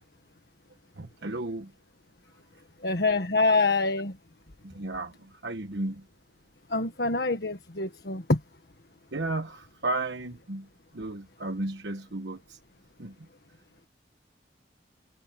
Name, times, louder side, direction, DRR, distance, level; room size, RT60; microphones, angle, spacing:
voice 1, 1.0-1.7 4.6-6.0 9.1-10.7 10.9-12.6 13.0-13.1, right 2 dB, 80° right, 1.3 m, -34 dB
voice 2, 2.8-4.1 6.7-8.4, left 3 dB, 65° left, 1.6 m, -25 dB
head